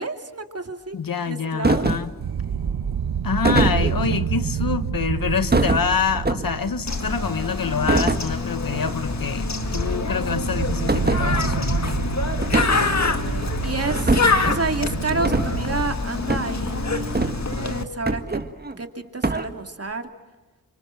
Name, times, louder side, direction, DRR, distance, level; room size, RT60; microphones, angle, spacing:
voice 1, 0.0-1.0 1.3-1.9 7.0-7.2 12.7-18.4 18.8-20.1, right 3 dB, 40° right, 6 dB, 2.7 m, -30 dB
voice 2, 0.9-2.1 3.2-12.0, left 6 dB, 70° left, 11 dB, 1.5 m, -26 dB
sound 1, 1.6-2.2 3.4-4.2 5.5-6.7 7.9-8.3 8.7-8.9 9.2-9.3 9.8-9.9 10.9-11.3 12.4-12.9 13.9-14.4 15.2-15.5 16.3-16.5 17.1-17.6 18.1-18.8 19.2-19.5, right 2 dB, 25° right, 1.7 m, -23 dB
sound 2, 2.2-15.9, right 8 dB, 80° right, 1.0 m, -29 dB
Bird, 6.9-17.8, left 3 dB, 50° left, 2.0 m, -26 dB
30.0 x 26.0 x 7.7 m, 1.2 s
wide cardioid pair, 65°, 36 cm